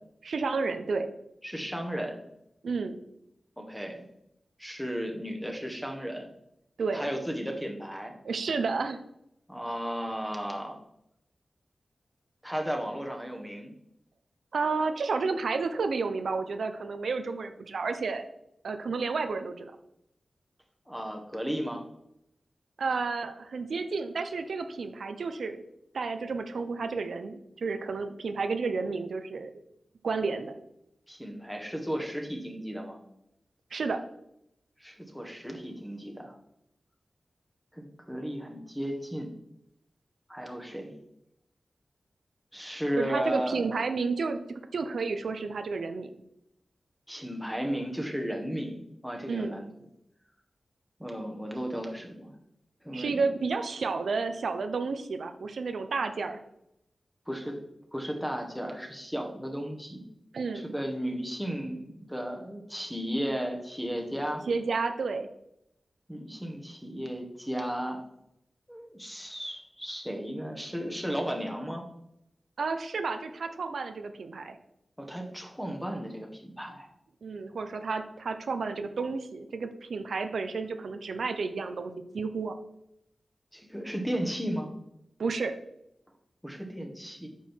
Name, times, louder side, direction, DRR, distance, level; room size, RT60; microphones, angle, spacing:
voice 1, 0.2-1.1 2.6-3.0 6.8-7.1 8.2-9.0 14.5-18.3 18.6-19.7 22.8-25.6 25.9-29.5 30.0-30.5 33.7-34.0 43.0-44.4 44.7-46.2 49.3-49.6 52.9-56.4 60.3-60.7 64.5-65.3 72.6-74.6 77.2-82.6 85.2-85.5, right 4 dB, 85° right, 8 dB, 0.7 m, -31 dB
voice 2, 1.4-2.2 3.6-4.0 4.6-6.3 6.9-8.1 9.5-10.8 12.4-13.7 20.9-21.8 31.1-33.0 34.8-36.3 37.7-39.3 40.3-40.9 42.5-43.7 47.1-49.7 51.0-52.3 52.8-53.2 57.3-57.6 57.9-60.0 60.6-64.4 66.1-68.0 68.7-71.8 75.0-76.9 83.5-84.7 86.4-87.3, equal, ahead, 2 dB, 1.5 m, -34 dB
8.7 x 5.6 x 4.5 m, 0.80 s
wide cardioid pair, 100°, 0 cm